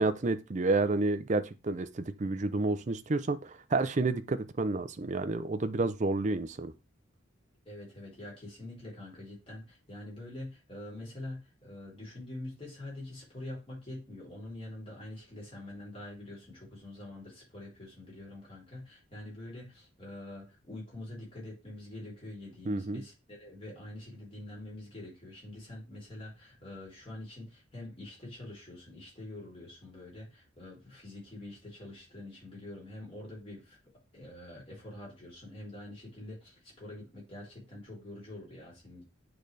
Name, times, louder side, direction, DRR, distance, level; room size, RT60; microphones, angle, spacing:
voice 1, 0.0-6.7 22.7-23.0, right 3 dB, 35° right, 0.5 m, -30 dB
voice 2, 7.7-33.8 34.1-39.0, left 1 dB, 30° left, 3.4 m, -45 dB
8.5 x 3.9 x 3.3 m
head